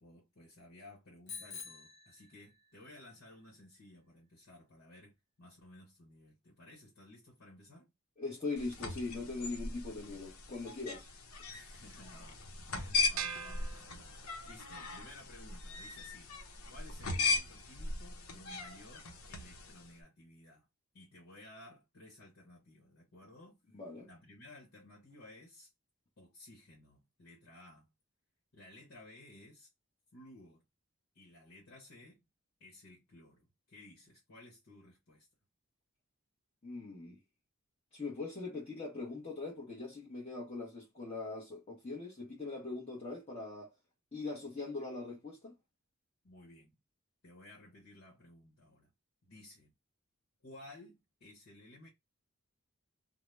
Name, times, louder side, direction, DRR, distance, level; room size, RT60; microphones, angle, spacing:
voice 1, 0.0-7.9 11.5-13.9 14.4-16.3 16.7-20.7 20.9-23.6 24.0-25.7 26.2-27.9 28.5-29.7 30.1-30.6 31.1-32.3 32.6-35.3 46.2-46.8 47.2-48.9 49.2-49.7 50.4-51.9, left 1 dB, 70° left, 1.1 m, -56 dB
Bicycle bell, 1.3-2.8, left 5 dB, 55° left, 0.8 m, -48 dB
voice 2, 8.2-11.1 23.7-24.1 36.6-37.2 37.9-43.7 44.1-45.6, left 3 dB, 30° left, 0.9 m, -41 dB
sound 1, 8.6-19.9, left 4 dB, 85° left, 0.8 m, -38 dB
sound 2, 13.2-14.6, right 8 dB, 75° right, 0.4 m, -43 dB
2.7 x 2.1 x 3.2 m
head